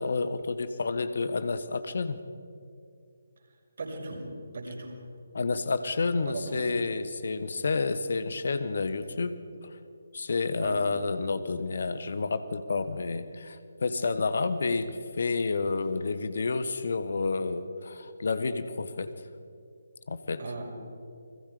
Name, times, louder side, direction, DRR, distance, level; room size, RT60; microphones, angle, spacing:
voice 1, 0.0-2.2 5.3-9.4 10.1-19.1 20.1-20.4, left 4 dB, 50° left, 12 dB, 1.3 m, -30 dB
voice 2, 3.8-4.3 4.5-4.9 6.2-6.7 10.5-10.8 20.4-20.6, right 3 dB, 50° right, 0 dB, 5.7 m, -38 dB
29.5 x 22.0 x 5.0 m, 2.4 s
figure-of-eight pair, 145°, 0 cm